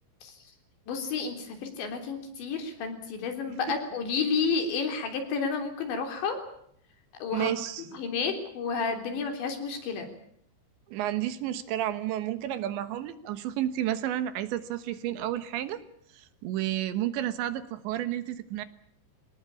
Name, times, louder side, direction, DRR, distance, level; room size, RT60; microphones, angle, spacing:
voice 1, 0.9-6.4 7.2-7.5 7.9-10.1, left 5 dB, 70° left, 5 dB, 5.7 m, -31 dB
voice 2, 7.3-7.9 10.9-15.8 16.1-18.7, right 12 dB, 75° right, 12 dB, 3.5 m, -31 dB
24.5 x 19.0 x 8.6 m, 0.68 s
omnidirectional pair, 5.3 m